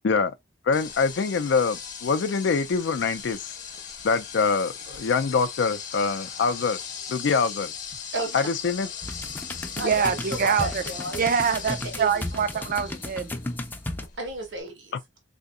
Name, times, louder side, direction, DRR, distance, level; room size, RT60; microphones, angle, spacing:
voice 1, 0.0-0.4 0.6-3.5 4.0-6.8 7.1-7.7 8.3-8.9, left 5 dB, 70° left, 0.4 m, -24 dB
sound 1, 0.7-14.6, left 7 dB, 45° left, 0.8 m, -39 dB
voice 2, 8.1-8.5 9.5-11.3 11.7-12.6 14.2-15.0, right 2 dB, 90° right, 1.3 m, -34 dB
sound 2, 9.0-14.1, left 1 dB, 10° left, 0.4 m, -34 dB
voice 3, 9.8-10.8 11.2-13.3, right 6 dB, 50° right, 0.4 m, -25 dB
3.7 x 2.8 x 2.4 m
head